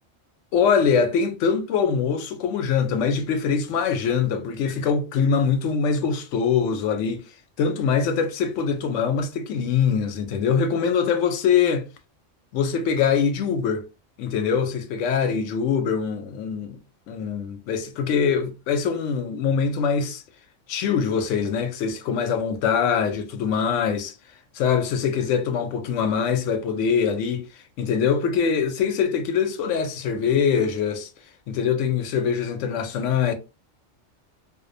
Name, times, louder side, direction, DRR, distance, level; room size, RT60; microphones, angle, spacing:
voice 1, 0.5-7.2 7.6-11.9 12.5-13.9 14.2-16.8 17.1-20.2 20.7-24.1 24.5-27.5 27.8-31.1 31.5-33.3, left 6 dB, 80° left, 0.9 m, -23 dB
2.5 x 2.1 x 2.5 m
omnidirectional pair, 1.2 m